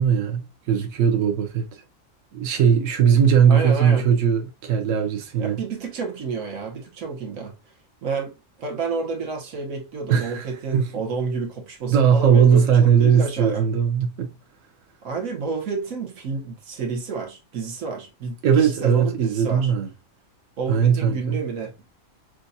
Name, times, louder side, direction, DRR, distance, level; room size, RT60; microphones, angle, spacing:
voice 1, 0.0-1.8 2.3-5.6 10.1-10.5 10.7-10.9 11.9-14.3 18.4-19.9 20.7-21.4, right 7 dB, 70° right, 1.1 m, -19 dB
voice 2, 3.5-4.1 5.4-7.5 8.0-13.7 15.0-19.7 20.6-21.7, right 4 dB, 85° right, 1.5 m, -30 dB
6.2 x 2.5 x 2.7 m
omnidirectional pair, 1.4 m